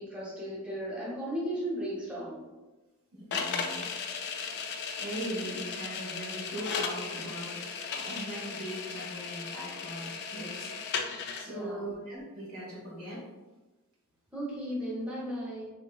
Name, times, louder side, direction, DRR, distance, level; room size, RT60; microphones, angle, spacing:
voice 1, 0.0-2.4 11.5-11.9 14.3-15.7, equal, 5° right, -7 dB, 0.7 m, -35 dB
voice 2, 3.1-3.9 5.0-10.7 11.3-13.2, right 1 dB, 80° right, -5 dB, 1.2 m, -40 dB
sound 1, 3.3-11.5, left 5 dB, 50° left, 0.3 m, -36 dB
3.4 x 2.8 x 2.2 m, 1.2 s
head